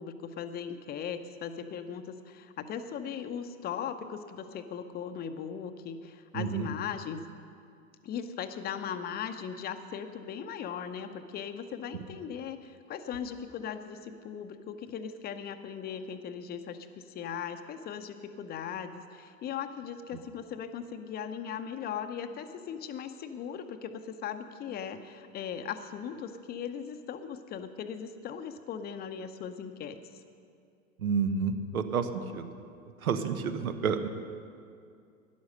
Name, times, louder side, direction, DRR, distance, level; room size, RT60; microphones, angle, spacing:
voice 1, 0.0-7.2 8.0-30.0, left 7 dB, 25° left, 9 dB, 0.7 m, -38 dB
voice 2, 6.3-6.7 31.0-32.5 33.0-34.1, right 6 dB, 80° right, 9 dB, 1.1 m, -30 dB
12.5 x 10.5 x 6.5 m, 2.3 s
hypercardioid pair, 105°, 42 cm